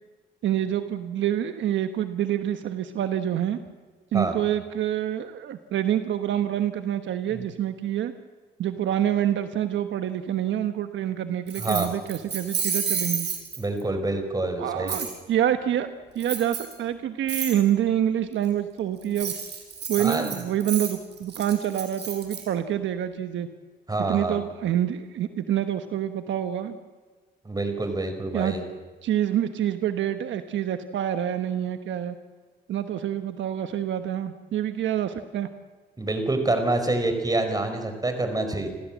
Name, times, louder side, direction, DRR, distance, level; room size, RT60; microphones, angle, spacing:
voice 1, 0.4-3.6 4.1-8.1 8.6-13.3 14.6-15.9 16.1-19.3 19.9-23.5 24.1-26.8 28.3-28.6 29.0-32.2 32.7-35.5, right 11 dB, 75° right, 9 dB, 1.2 m, -27 dB
Keys jangling, 11.5-13.8 14.9-15.1 16.2-16.7 17.3-17.5 19.0-22.4, right 6 dB, 60° right, 6.5 m, -30 dB
voice 2, 11.6-11.9 13.6-15.0 20.0-20.3 23.9-24.4 27.4-28.6 36.0-38.7, right 2 dB, 20° right, 7 dB, 4.9 m, -27 dB
29.0 x 15.0 x 7.4 m, 1.4 s
cardioid pair, 90°, 20 cm